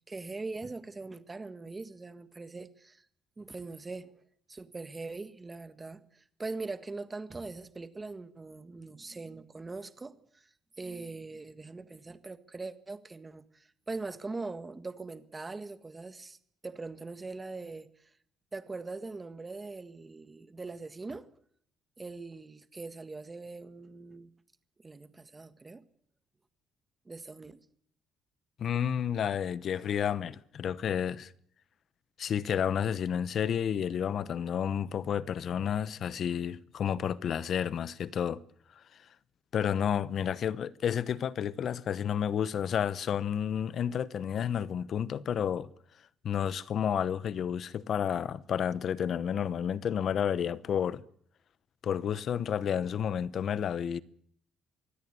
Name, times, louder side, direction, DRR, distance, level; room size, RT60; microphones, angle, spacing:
voice 1, 0.1-3.0 3.4-4.2 4.5-10.5 10.8-16.4 16.6-18.1 18.5-21.3 22.0-24.3 24.8-25.8 27.0-27.6, right 3 dB, 20° right, 1.6 m, -42 dB
voice 2, 28.6-31.3 32.2-38.4 38.7-39.1 39.5-45.7 46.2-51.0 51.8-54.0, left 8 dB, 50° left, 1.0 m, -31 dB
24.0 x 16.5 x 9.8 m
cardioid pair, 140°, 0 cm